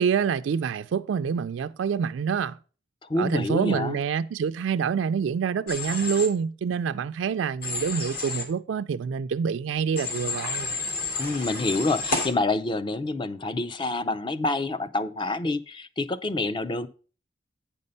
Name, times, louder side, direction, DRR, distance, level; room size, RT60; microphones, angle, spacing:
voice 1, 0.0-2.6 3.2-10.7, right 6 dB, 90° right, 0.3 m, -26 dB
voice 2, 3.0-4.0 11.2-16.9, left 2 dB, 25° left, 0.4 m, -27 dB
Human voice / Train, 5.7-6.3 7.6-8.4 10.0-12.3, left 3 dB, 55° left, 1.9 m, -30 dB
8.6 x 5.3 x 5.4 m
head